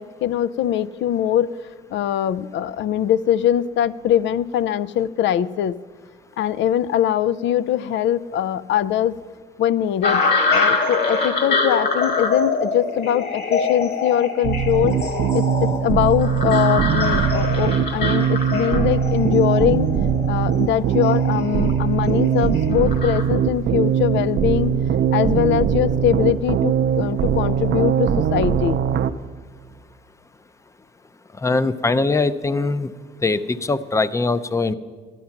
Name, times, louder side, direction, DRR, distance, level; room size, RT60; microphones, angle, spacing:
voice 1, 0.0-1.5 1.9-5.7 6.4-9.1 9.6-10.2 10.5-14.9 15.3-19.9 20.3-24.7 25.1-28.8, left 10 dB, 70° left, 18 dB, 0.4 m, -22 dB
sound 1, 10.0-23.2, left 4 dB, 55° left, 2.4 m, -24 dB
sound 2, 14.4-29.1, right 8 dB, 65° right, 0.6 m, -21 dB
voice 2, 31.4-32.9 33.2-34.7, left 3 dB, 15° left, 14 dB, 0.5 m, -21 dB
12.5 x 11.0 x 5.8 m, 1.5 s
cardioid pair, 90°, 20 cm